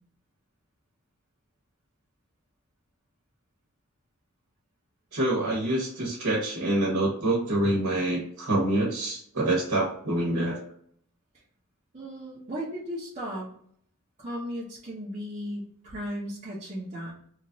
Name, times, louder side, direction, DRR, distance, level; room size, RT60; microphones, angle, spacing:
voice 1, 5.1-10.5, right 1 dB, 85° right, -3 dB, 1.0 m, -26 dB
voice 2, 11.9-13.5 14.2-17.1, equal, 30° right, -6 dB, 0.7 m, -36 dB
3.0 x 2.4 x 2.6 m, 0.62 s
head